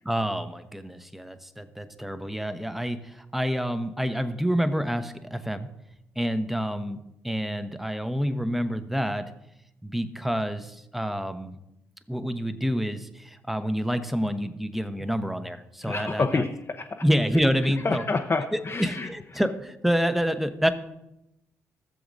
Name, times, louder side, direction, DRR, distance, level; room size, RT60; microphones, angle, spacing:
voice 1, 0.0-5.7 6.2-9.3 9.8-11.5 12.1-16.4 17.0-18.0 18.5-20.7, equal, 5° right, 10 dB, 0.9 m, -28 dB
voice 2, 15.9-17.0 17.8-19.1, left 3 dB, 35° left, 4 dB, 0.7 m, -28 dB
15.0 x 7.1 x 2.6 m, 0.88 s
hypercardioid pair, 45°, 7 cm